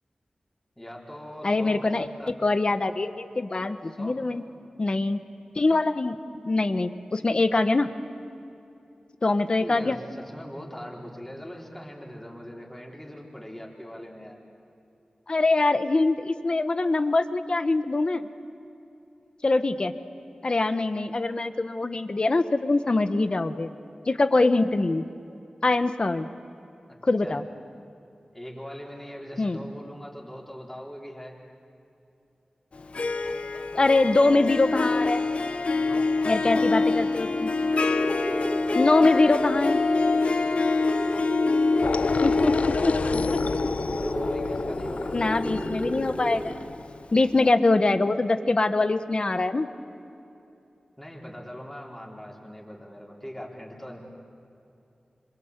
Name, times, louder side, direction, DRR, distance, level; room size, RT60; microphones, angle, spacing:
voice 1, 0.8-2.3 3.9-4.2 9.6-14.4 26.9-27.0 27.2-27.4 28.3-31.4 35.7-36.9 42.0-43.3 43.9-45.3 51.0-54.0, equal, 10° left, -2 dB, 4.3 m, -41 dB
voice 2, 1.4-4.4 4.8-5.2 5.5-6.2 6.4-7.9 9.2-10.0 15.3-18.2 19.4-19.9 20.4-23.7 24.1-25.1 25.6-26.3 27.0-27.4 29.4-29.6 33.7-35.2 36.3-37.5 38.7-39.8 42.2-42.9 43.3-43.4 45.1-46.7 47.1-49.7, left 2 dB, 45° left, 10 dB, 1.2 m, -23 dB
Harp, 32.8-46.7, left 3 dB, 60° left, 0.9 m, -26 dB
sound 1, 37.7-46.5, right 1 dB, 10° right, 1.7 m, -33 dB
sound 2, 41.8-47.0, left 4 dB, 75° left, 0.5 m, -31 dB
27.0 x 25.5 x 8.3 m, 2.8 s
wide cardioid pair, 100°, 2 cm